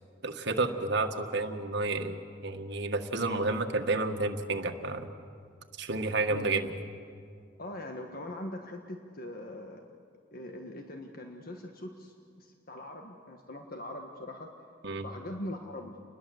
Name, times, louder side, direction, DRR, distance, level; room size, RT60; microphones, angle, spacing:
voice 1, 0.2-5.1 5.8-6.7 14.8-15.0, right 3 dB, 60° right, 4 dB, 1.8 m, -30 dB
voice 2, 6.3-6.6 7.6-10.0 10.3-14.5 15.0-16.0, left 1 dB, 50° left, 3 dB, 1.5 m, -42 dB
29.5 x 21.0 x 7.9 m, 2.3 s
head